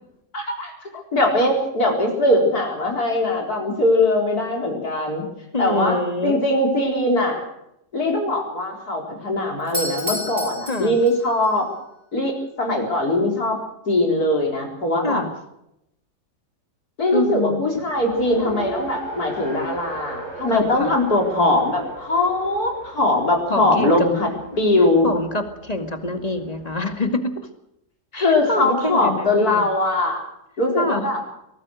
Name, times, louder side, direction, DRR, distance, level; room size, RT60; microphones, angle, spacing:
voice 1, 0.3-5.2 5.6-7.4 7.9-11.7 12.1-13.6 13.9-15.2 17.0-24.3 24.6-25.1 28.1-30.2 30.6-31.2, left 1 dB, 70° left, 1 dB, 4.9 m, -21 dB
voice 2, 5.5-6.4 10.7-11.0 15.0-15.3 17.1-17.7 20.5-20.9 23.5-24.1 24.5-24.6 25.0-27.3 28.1-29.6 30.8-31.0, left 2 dB, 25° left, 7 dB, 2.3 m, -25 dB
Doorbell, 9.6-11.5, left 1 dB, 30° right, 4.9 m, -30 dB
Race car auto racing, 17.9-27.0, right 2 dB, 75° right, 7.6 m, -38 dB
23.5 x 19.0 x 6.5 m, 0.81 s
omnidirectional pair, 1.7 m